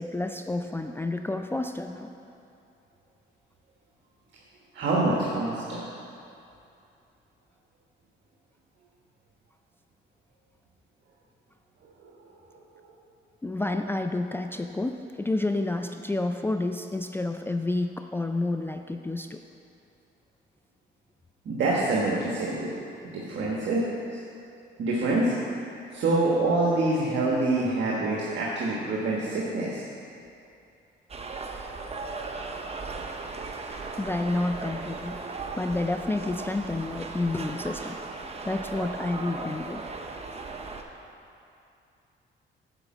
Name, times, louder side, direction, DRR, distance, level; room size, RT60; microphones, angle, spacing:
voice 1, 0.0-2.1 13.4-19.4 34.0-35.2 35.6-38.0 38.4-39.8, left 2 dB, 10° left, 6 dB, 0.3 m, -29 dB
voice 2, 4.7-5.9 12.0-12.2 12.5-12.6 21.4-22.7 23.1-23.9 24.1-24.2 24.8-25.3 25.9-29.8, right 2 dB, 65° right, -4 dB, 1.3 m, -26 dB
sound 1, 31.1-40.8, right 3 dB, 30° right, 0.8 m, -37 dB
8.2 x 5.1 x 7.3 m, 2.7 s
cardioid pair, 90°, 20 cm